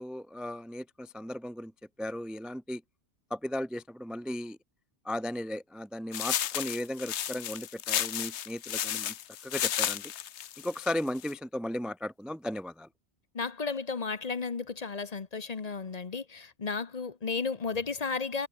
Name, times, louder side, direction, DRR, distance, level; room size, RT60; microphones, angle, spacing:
voice 1, 0.0-1.7 2.0-2.8 3.3-4.6 5.0-9.1 9.4-10.1 10.6-12.9, left 1 dB, ahead, 0.3 m, -36 dB
sound 1, 6.1-11.3, left 10 dB, 85° left, 1.0 m, -33 dB
voice 2, 13.3-18.5, left 4 dB, 40° left, 1.0 m, -33 dB
omnidirectional pair, 1.1 m